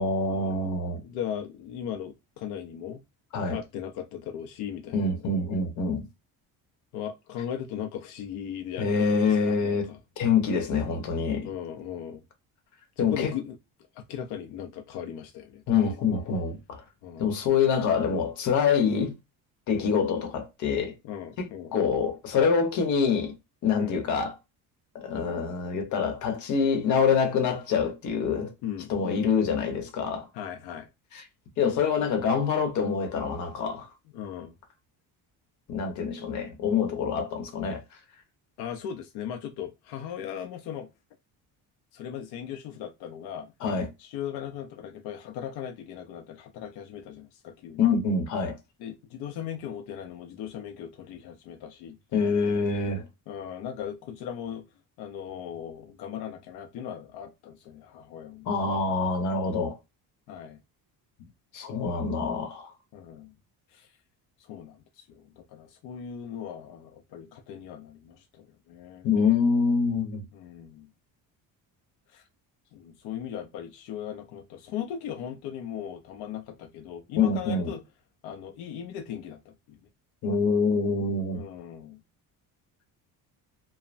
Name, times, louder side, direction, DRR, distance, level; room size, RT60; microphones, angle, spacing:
voice 1, 0.0-1.0 3.3-3.6 4.9-6.0 8.8-9.9 10.2-11.5 13.0-13.3 15.7-16.8 17.2-19.1 19.7-20.9 21.4-23.3 23.6-24.3 24.9-28.5 28.9-30.3 31.1-31.2 31.6-33.9 35.7-37.8 43.6-43.9 47.8-48.6 52.1-53.1 58.5-59.8 61.5-62.7 69.0-70.2 77.2-77.7 80.2-81.4, left 5 dB, 50° left, 0.9 m, -25 dB
voice 2, 0.9-3.0 3.5-5.0 6.9-10.0 11.4-12.2 13.0-13.6 13.9-15.6 17.0-17.3 19.8-19.9 21.0-21.8 23.8-24.0 28.6-29.3 30.3-30.9 34.1-34.5 38.6-40.9 41.9-43.5 44.0-47.8 48.8-52.7 53.3-54.7 55.0-58.5 60.3-60.6 61.2-61.3 62.9-63.3 63.7-63.9 64.5-69.1 70.3-70.9 72.1-72.2 72.7-77.8 78.2-79.8 81.3-82.0, left 9 dB, 85° left, 0.6 m, -38 dB
3.1 x 2.0 x 2.4 m
cardioid pair, 180°, 38 cm